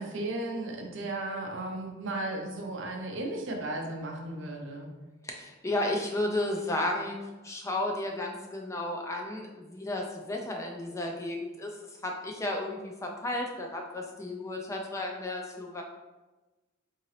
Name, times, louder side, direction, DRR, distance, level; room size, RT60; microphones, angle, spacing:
voice 1, 0.0-4.9, right 2 dB, 60° right, 2 dB, 0.6 m, -35 dB
voice 2, 5.2-11.8 12.0-15.8, left 1 dB, 15° left, 1 dB, 0.3 m, -33 dB
3.7 x 2.8 x 3.1 m, 1.2 s
head